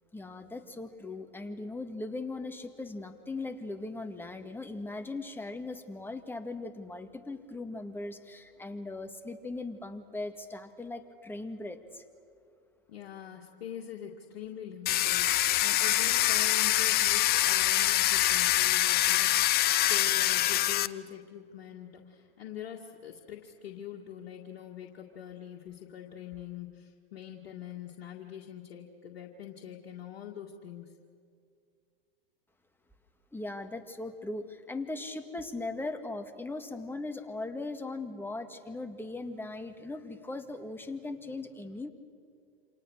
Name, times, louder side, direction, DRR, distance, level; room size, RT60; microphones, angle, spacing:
voice 1, 0.1-12.0 33.3-41.9, left 2 dB, 5° left, 6 dB, 2.0 m, -39 dB
voice 2, 12.9-19.6 19.9-31.0, left 10 dB, 70° left, -1 dB, 2.2 m, -44 dB
Domestic sounds home sounds, 14.9-20.9, left 15 dB, 30° left, 0.7 m, -25 dB
28.5 x 27.0 x 6.5 m, 2.2 s
hypercardioid pair, 105°, 30 cm